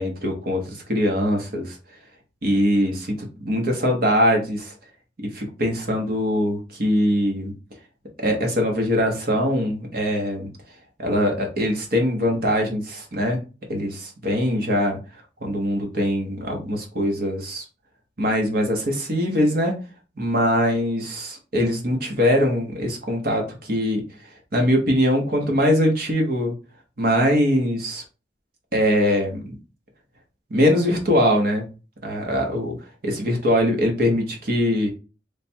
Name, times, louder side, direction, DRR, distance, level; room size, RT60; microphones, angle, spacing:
voice 1, 0.0-1.8 2.4-4.7 5.3-7.5 8.2-10.5 11.0-13.4 13.7-15.0 15.4-17.6 18.2-19.7 20.2-24.0 24.5-26.5 27.0-28.0 28.7-29.5 30.5-31.7 32.0-32.7 33.0-34.9, equal, 55° right, 2 dB, 1.0 m, -22 dB
3.3 x 2.4 x 4.3 m, 0.33 s
head